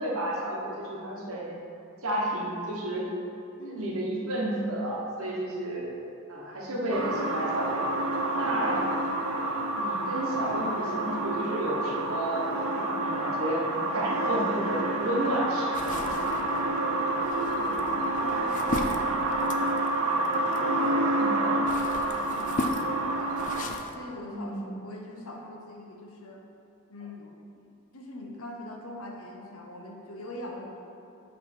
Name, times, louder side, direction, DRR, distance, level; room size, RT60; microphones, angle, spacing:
voice 1, 0.0-1.6 2.0-3.1 3.7-5.9 6.3-7.9 8.4-8.8 9.7-16.1 21.2-21.4 24.3-24.6, right 1 dB, 75° right, -4 dB, 1.2 m, -31 dB
voice 2, 3.6-4.0 8.7-9.1 17.4-19.8 20.6-26.4 26.9-27.3 27.9-30.8, left 1 dB, 75° left, 0 dB, 0.9 m, -43 dB
sound 1, 6.9-23.6, right 2 dB, 90° right, 0.6 m, -28 dB
sound 2, 15.7-20.9 21.4-23.9, left 3 dB, 35° left, 0.3 m, -37 dB
8.1 x 3.3 x 4.4 m, 2.6 s
head